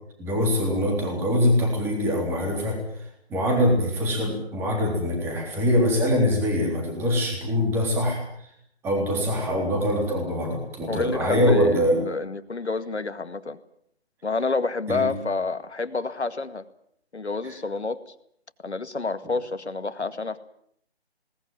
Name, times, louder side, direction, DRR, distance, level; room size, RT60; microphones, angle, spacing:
voice 1, 0.2-8.2 8.8-12.0 14.9-15.1 17.4-17.5, equal, 5° right, 1 dB, 3.6 m, -23 dB
voice 2, 10.9-13.6 14.2-16.6 17.1-18.1 18.6-20.4, left 3 dB, 90° left, 10 dB, 2.1 m, -29 dB
21.0 x 19.0 x 9.1 m, 0.69 s
figure-of-eight pair, 160°, 33 cm